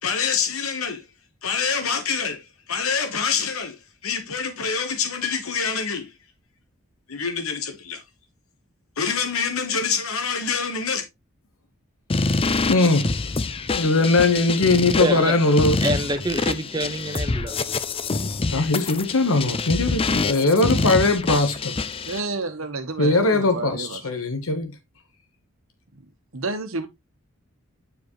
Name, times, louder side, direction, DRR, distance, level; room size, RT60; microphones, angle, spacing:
voice 1, 0.0-1.0 1.4-3.8 4.0-6.1 7.1-8.0 9.0-11.0 12.7-13.4 13.7-15.8 18.5-21.8 23.0-24.8, left 3 dB, 85° left, 1.2 m, -22 dB
sound 1, 12.1-22.2, left 3 dB, 25° left, 0.4 m, -26 dB
voice 2, 15.0-15.3 15.8-17.5, right 1 dB, 20° right, 1.1 m, -26 dB
voice 3, 22.1-24.0 26.3-26.9, right 3 dB, 75° right, 1.2 m, -30 dB
9.3 x 4.9 x 3.1 m
head